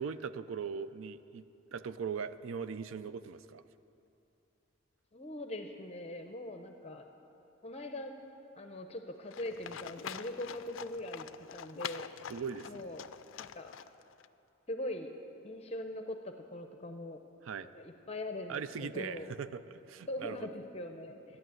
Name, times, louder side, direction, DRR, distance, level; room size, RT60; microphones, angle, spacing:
voice 1, 0.0-3.6 12.3-12.9 17.4-17.7 18.5-20.5, right 6 dB, 75° right, 13 dB, 0.4 m, -40 dB
voice 2, 5.1-7.1 7.6-8.1 8.6-11.3 11.5-12.1 12.6-13.1 13.4-13.8 14.7-15.1 15.4-17.2 17.7-19.3 20.1-21.4, left 1 dB, 30° left, 6 dB, 0.6 m, -41 dB
Livestock farm animals working animals, 9.3-14.3, left 8 dB, 70° left, 0.4 m, -45 dB
12.0 x 10.0 x 7.8 m, 2.8 s
head